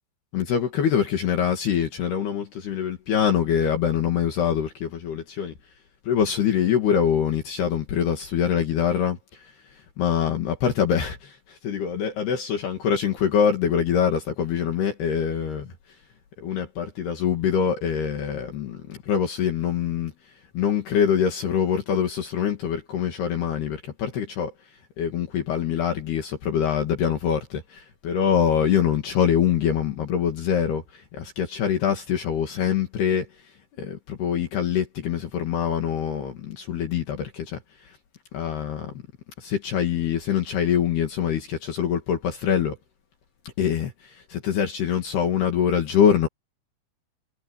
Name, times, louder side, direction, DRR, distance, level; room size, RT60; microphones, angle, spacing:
voice 1, 0.3-5.5 6.1-9.2 10.0-15.7 16.4-20.1 20.5-24.5 25.0-33.3 33.8-37.6 38.3-39.0 39.4-42.8 43.6-46.3, left 8 dB, 60° left, 4.0 m, -24 dB
omnidirectional pair, 5.6 m